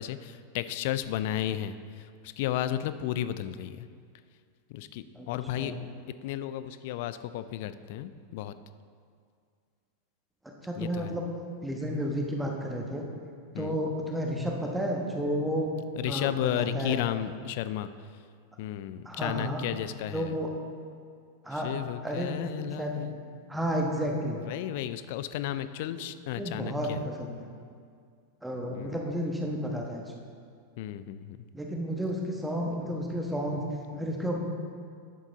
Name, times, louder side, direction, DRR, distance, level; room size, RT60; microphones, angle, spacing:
voice 1, 0.0-3.9 4.7-5.7 6.2-8.5 10.8-11.2 13.5-13.8 15.9-17.9 18.6-20.4 21.5-23.2 24.3-27.1 28.7-29.0 30.8-31.4, left 12 dB, 50° left, 13 dB, 0.4 m, -33 dB
voice 2, 10.6-11.3 11.6-13.1 13.6-15.7 16.1-17.0 19.0-19.6 20.1-20.5 21.4-21.7 22.0-23.1 23.5-24.4 26.4-27.5 28.4-30.0 31.5-33.6 33.9-34.4, equal, 5° right, 0 dB, 1.2 m, -32 dB
10.5 x 7.3 x 3.9 m, 2.2 s
figure-of-eight pair, 90°, 0 cm